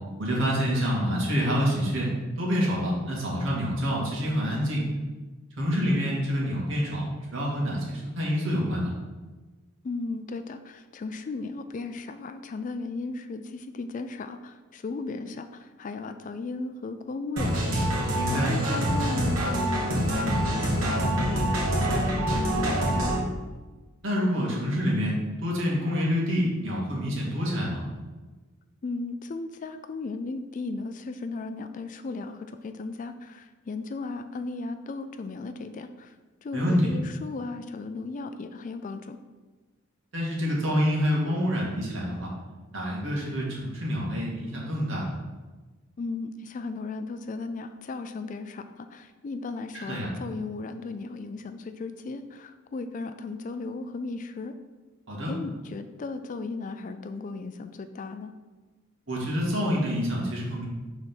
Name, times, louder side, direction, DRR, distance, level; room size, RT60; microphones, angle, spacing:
voice 1, 0.2-2.1 2.4-4.8 5.6-8.9 18.1-18.5 24.0-27.8 36.5-36.9 40.1-42.3 42.7-45.1 49.7-50.1 55.1-55.3 59.1-60.6, equal, 65° right, -4 dB, 2.0 m, -27 dB
voice 2, 9.8-17.5 18.0-23.2 28.8-36.1 36.4-39.2 46.0-54.5 55.3-58.3, left 3 dB, 40° left, 9 dB, 0.3 m, -36 dB
sound 1, 17.4-23.2, right 1 dB, 80° right, 1.9 m, -26 dB
5.6 x 4.0 x 6.0 m, 1.2 s
head